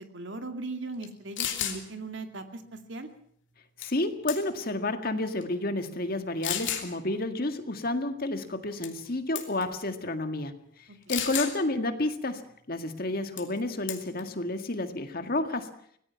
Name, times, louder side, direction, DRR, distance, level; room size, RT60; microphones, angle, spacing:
voice 1, 0.0-2.6 2.9-3.1, right 3 dB, 60° right, 6 dB, 2.3 m, -38 dB
sound 1, 1.0-1.1 1.4-1.8 3.8-4.0 4.3-4.7 5.4-5.5 6.4-6.9 8.8-9.1 9.4-9.6 11.1-11.5 13.4-13.6 13.9-14.2, left 10 dB, 65° left, 2.9 m, -32 dB
voice 2, 3.8-10.5 11.1-12.4 12.7-15.7, left 2 dB, 45° left, 7 dB, 1.9 m, -30 dB
25.0 x 18.0 x 5.9 m, 0.64 s
head